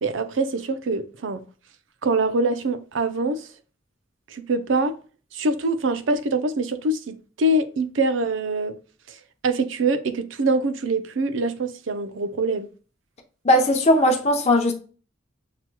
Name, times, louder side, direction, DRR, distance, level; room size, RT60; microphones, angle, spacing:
voice 1, 0.0-1.4 2.0-3.5 4.3-5.0 5.3-8.8 9.1-9.2 9.4-12.7, right 2 dB, 70° right, 0.5 m, -24 dB
voice 2, 13.4-14.7, left 1 dB, 35° left, 0.7 m, -18 dB
5.9 x 2.9 x 2.2 m
head